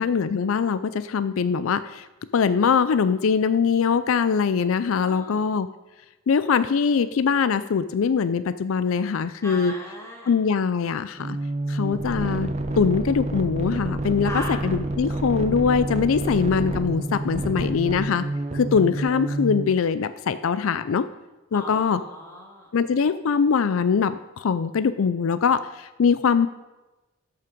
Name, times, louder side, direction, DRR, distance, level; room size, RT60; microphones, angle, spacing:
voice 1, 0.0-2.1 2.3-5.7 6.3-9.7 10.3-11.4 11.7-12.5 12.8-18.2 18.5-21.1 21.5-22.0 22.7-26.5, left 6 dB, 80° left, 13 dB, 0.4 m, -22 dB
voice 2, 5.0-5.5 9.4-10.3 14.2-14.6 21.5-22.7, left 1 dB, 15° left, -2 dB, 2.0 m, -37 dB
sound 1, 11.2-19.8, right 2 dB, 30° right, 0.7 m, -28 dB
13.0 x 5.8 x 5.1 m, 1.1 s
head